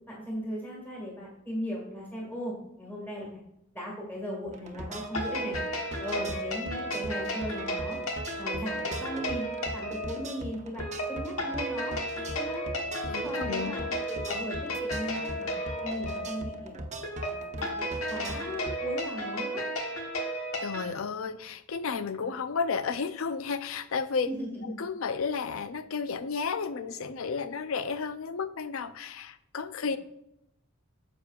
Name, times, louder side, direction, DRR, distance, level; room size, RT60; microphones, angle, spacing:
voice 1, 0.1-3.4 3.7-5.6 6.0-8.0 8.4-9.5 9.7-12.0 12.3-12.7 13.1-15.5 15.8-16.7 17.2-19.6 24.3-24.7, equal, 10° left, -4 dB, 1.8 m, -37 dB
sound 1, 4.5-18.8, right 1 dB, 35° right, 0.8 m, -41 dB
sound 2, 5.0-20.9, equal, 90° left, 1.2 m, -34 dB
voice 2, 13.0-13.7 20.6-24.3 24.8-30.0, left 5 dB, 75° left, 12 dB, 0.5 m, -32 dB
9.5 x 6.9 x 2.4 m, 0.82 s
head